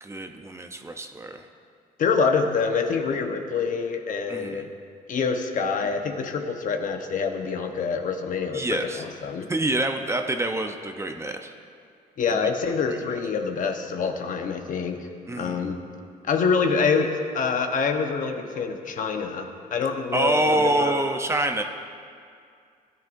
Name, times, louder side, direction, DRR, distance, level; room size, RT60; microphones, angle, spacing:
voice 1, 0.0-1.4 4.3-4.7 8.5-9.0 9.5-11.5 12.7-13.0 15.3-15.7 20.1-21.6, right 1 dB, 15° right, 5 dB, 0.7 m, -26 dB
voice 2, 2.0-4.7 5.1-9.5 12.2-15.1 15.4-15.8 16.3-21.1, left 5 dB, 55° left, 4 dB, 1.1 m, -26 dB
18.0 x 11.0 x 2.6 m, 2.3 s
cardioid pair, 100°, 16 cm